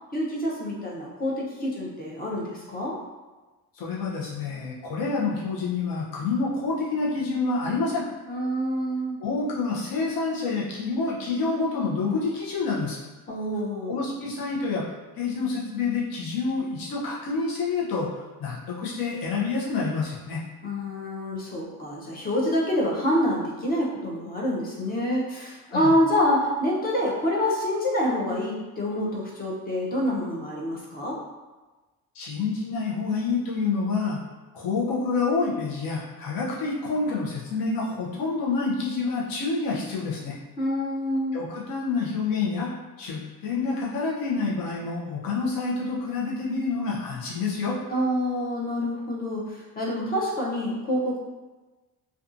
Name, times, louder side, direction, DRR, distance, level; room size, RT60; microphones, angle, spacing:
voice 1, 0.1-3.0 8.3-9.2 13.3-14.0 20.6-31.2 40.6-41.4 47.9-51.2, equal, 25° left, -4 dB, 0.6 m, -27 dB
voice 2, 3.7-8.0 9.2-13.0 13.9-14.8 15.2-20.4 25.7-25.9 32.1-34.2 34.5-40.3 41.3-42.7 43.0-47.8, left 4 dB, 65° left, -5 dB, 0.7 m, -28 dB
2.6 x 2.3 x 2.5 m, 1.2 s
cardioid pair, 135°, 38 cm